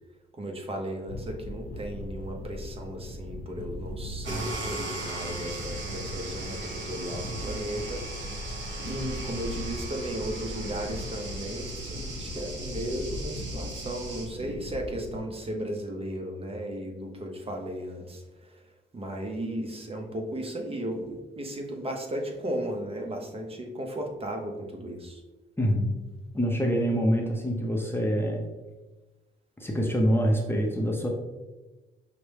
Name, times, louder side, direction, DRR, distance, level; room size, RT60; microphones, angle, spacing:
voice 1, 0.3-8.0 8.3-18.6 18.9-25.2, right 1 dB, 30° right, 2 dB, 0.7 m, -35 dB
sound 1, 1.1-15.2, left 1 dB, 45° left, 0.8 m, -39 dB
sound 2, 4.2-14.3, right 2 dB, 70° right, 1.1 m, -38 dB
voice 2, 25.6-25.9 26.3-28.5 29.6-31.1, equal, 10° left, 0 dB, 0.6 m, -25 dB
5.8 x 2.1 x 3.2 m, 1.1 s
cardioid pair, 90°, 20 cm